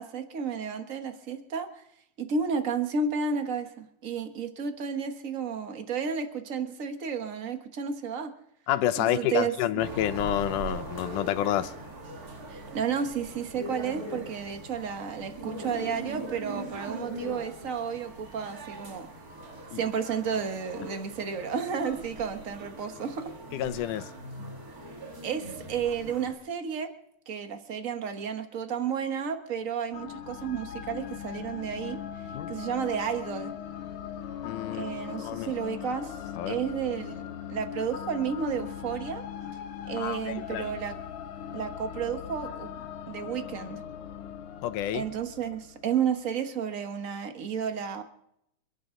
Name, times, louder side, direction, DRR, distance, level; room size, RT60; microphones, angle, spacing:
voice 1, 0.0-1.8 2.2-8.3 9.1-9.5 12.5-19.1 19.7-23.3 25.2-26.9 27.3-32.0 32.5-33.5 34.7-36.2 36.5-37.2 37.5-39.2 39.9-40.9 41.5-42.7 43.1-43.8 44.9-48.0, right 6 dB, 50° right, 0.9 m, -32 dB
voice 2, 8.7-11.8 19.7-19.8 23.5-24.1 32.3-32.5 34.4-35.5 36.3-36.6 40.0-40.7 44.6-45.1, left 12 dB, 90° left, 2.3 m, -29 dB
sound 1, 9.8-26.3, right 2 dB, 35° right, 2.0 m, -41 dB
sound 2, 29.9-46.1, left 9 dB, 70° left, 2.4 m, -40 dB
28.5 x 11.0 x 3.8 m
omnidirectional pair, 3.5 m